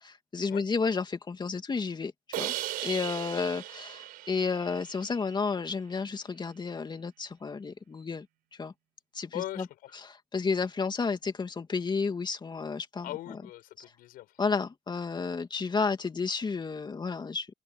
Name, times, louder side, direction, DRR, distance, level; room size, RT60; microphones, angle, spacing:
voice 1, 0.0-2.5 2.8-8.3 8.6-8.7 9.1-9.7 10.0-13.1 14.4-17.5, left 4 dB, 30° left, 2.7 m, -31 dB
Crash cymbal, 2.3-5.4, right 16 dB, 75° right, 5.5 m, -37 dB
voice 2, 9.3-10.0 13.0-14.6, left 15 dB, 75° left, 6.5 m, -40 dB
open air
supercardioid pair, 85°, 15 cm